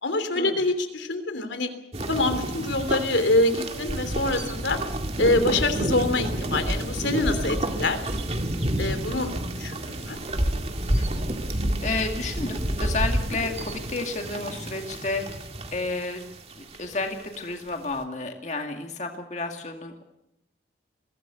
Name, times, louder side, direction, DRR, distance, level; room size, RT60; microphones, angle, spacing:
voice 1, 0.0-1.7 2.1-4.8 5.2-8.0 8.8-9.3 9.6-10.2, left 2 dB, 85° left, 8 dB, 3.1 m, -25 dB
sound 1, 1.9-17.4, right 1 dB, 35° right, 2.0 m, -29 dB
voice 2, 10.9-11.3 11.8-15.4 15.7-16.2 16.6-20.0, left 3 dB, 40° left, 3 dB, 2.1 m, -31 dB
22.5 x 17.0 x 8.2 m, 0.87 s
head